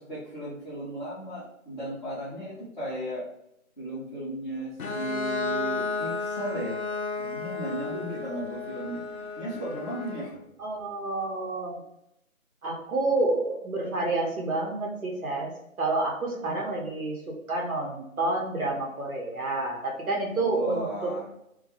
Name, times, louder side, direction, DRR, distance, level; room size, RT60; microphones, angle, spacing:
voice 1, 0.0-3.3 3.8-6.8 7.1-9.1 9.4-10.3 16.4-16.6 20.4-21.3, right 1 dB, 35° left, -11 dB, 0.5 m, -35 dB
Bowed string instrument, 4.8-10.4, left 4 dB, 80° left, 0.5 m, -33 dB
voice 2, 10.6-11.8 12.6-15.5 15.8-21.1, right 2 dB, 80° right, -1 dB, 0.8 m, -29 dB
2.2 x 2.0 x 2.8 m, 0.79 s
figure-of-eight pair, 160°, 42 cm